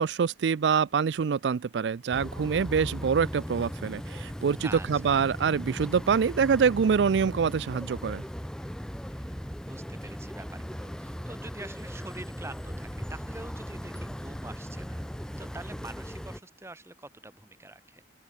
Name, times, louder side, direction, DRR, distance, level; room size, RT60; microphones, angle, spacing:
voice 1, 0.0-8.2, right 6 dB, 85° right, 0.4 m, -25 dB
sound 1, 2.1-16.4, equal, 5° left, 1.2 m, -38 dB
voice 2, 4.6-5.2 9.1-15.0 15.4-18.0, right 2 dB, 15° right, 1.3 m, -45 dB
open air
head